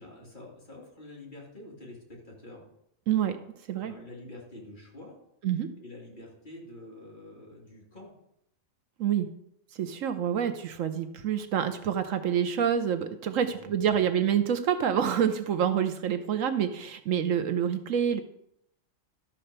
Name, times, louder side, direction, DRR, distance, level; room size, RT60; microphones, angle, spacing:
voice 1, 0.0-2.6 3.8-5.2 5.8-8.1 13.4-14.1, left 1 dB, 35° left, -3 dB, 2.6 m, -47 dB
voice 2, 3.1-3.4 3.7-3.9 5.4-5.7 9.0-9.3 9.7-18.2, right 8 dB, 70° right, 8 dB, 1.0 m, -27 dB
12.5 x 4.4 x 6.6 m, 0.78 s
omnidirectional pair, 1.4 m